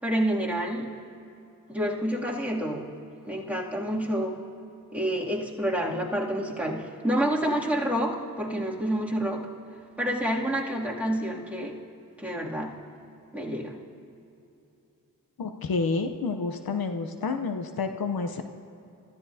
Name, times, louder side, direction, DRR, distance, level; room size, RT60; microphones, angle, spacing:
voice 1, 0.0-0.9 1.7-2.9 3.3-4.4 4.9-9.5 10.0-11.8 12.2-12.7 13.3-13.8, equal, 5° right, -5 dB, 2.6 m, -28 dB
voice 2, 15.4-18.4, left 4 dB, 80° left, 7 dB, 0.8 m, -29 dB
25.0 x 14.0 x 2.8 m, 2.8 s
cardioid pair, 60°, 35 cm